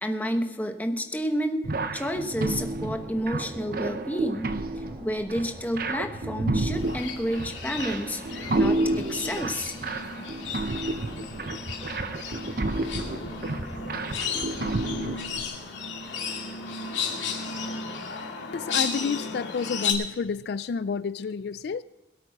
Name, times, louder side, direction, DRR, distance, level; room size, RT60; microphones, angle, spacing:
voice 1, 0.0-9.8, equal, 10° left, 5 dB, 1.0 m, -30 dB
sound 1, 1.6-15.4, right 2 dB, 50° right, 0.8 m, -31 dB
sound 2, 1.7-18.3, equal, 10° right, 4.9 m, -51 dB
sound 3, 6.7-19.9, left 5 dB, 85° left, 2.3 m, -34 dB
voice 2, 18.5-21.8, left 5 dB, 60° left, 16 dB, 0.3 m, -30 dB
22.0 x 8.6 x 4.6 m, 1.1 s
head